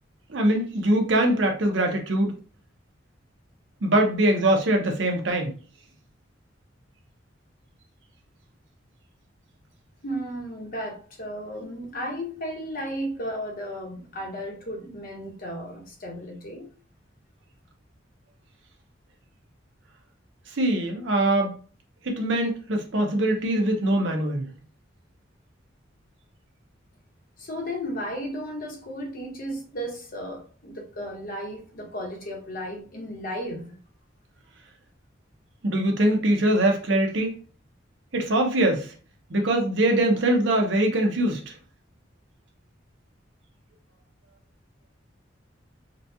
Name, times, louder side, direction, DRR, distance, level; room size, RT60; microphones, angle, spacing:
voice 1, 0.3-2.3 3.8-5.5 20.5-21.5 22.0-24.5 35.6-37.4 38.1-38.9 39.3-41.5, right 1 dB, 70° right, 0.8 m, -22 dB
voice 2, 10.0-16.7 27.4-33.8, equal, 50° left, 1.0 m, -34 dB
4.0 x 2.3 x 2.7 m
head